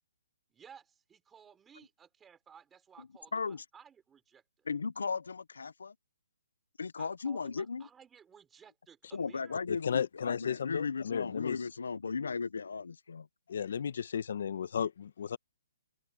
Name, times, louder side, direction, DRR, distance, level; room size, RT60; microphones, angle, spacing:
voice 1, 0.5-4.7 7.0-9.6, right 7 dB, 10° right, 3.9 m, -57 dB
voice 2, 3.3-3.6 4.7-5.9 6.8-7.8 9.1-13.3, left 5 dB, 85° left, 0.7 m, -36 dB
voice 3, 9.7-11.6 13.5-15.4, left 7 dB, 55° left, 1.1 m, -34 dB
open air
hypercardioid pair, 165°, 0 cm